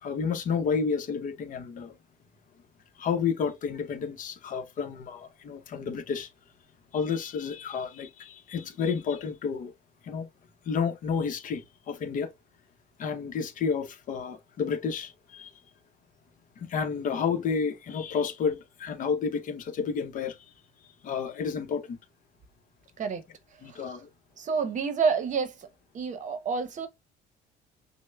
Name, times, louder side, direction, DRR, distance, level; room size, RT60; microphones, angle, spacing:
voice 1, 0.0-1.9 3.0-6.3 6.9-9.7 10.0-10.3 10.7-12.3 13.0-15.5 16.6-20.5 21.0-22.0 23.6-24.1, left 6 dB, 50° left, 0.7 m, -31 dB
voice 2, 24.4-25.7 25.9-26.9, right 5 dB, 45° right, 0.8 m, -29 dB
6.2 x 2.1 x 2.2 m
cardioid pair, 110°, 17 cm